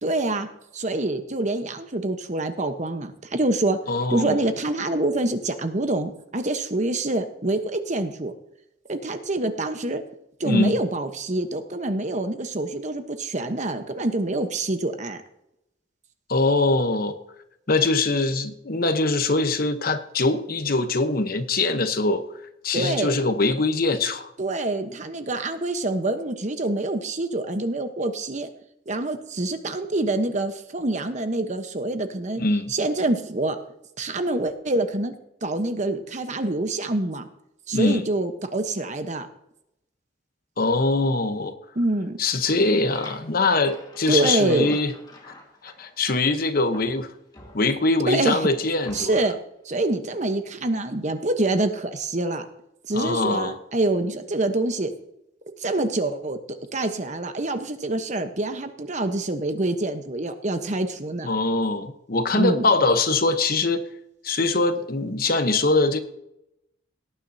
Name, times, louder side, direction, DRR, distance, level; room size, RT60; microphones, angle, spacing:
voice 1, 0.0-3.8 4.1-8.3 8.9-10.0 10.4-15.2 22.7-23.2 24.4-28.5 28.9-32.4 32.7-33.6 34.0-35.1 35.4-37.3 37.7-39.3 41.7-42.2 44.1-44.8 48.1-48.5 48.9-49.4 49.6-52.5 52.9-54.9 55.6-61.3 62.3-62.7, right 2 dB, 40° right, 8 dB, 1.1 m, -26 dB
voice 2, 3.9-4.4 10.5-10.8 16.3-17.1 17.7-22.2 22.6-24.3 32.4-32.7 37.7-38.0 40.6-41.5 42.2-44.9 45.6-47.1 47.5-49.2 52.9-53.6 61.2-63.9 64.2-66.0, left 3 dB, 55° left, 9 dB, 1.0 m, -22 dB
sound 1, 42.9-46.4 46.7-48.1 48.8-49.4, left 2 dB, 25° left, 1.9 m, -45 dB
18.0 x 9.5 x 2.8 m, 0.81 s
head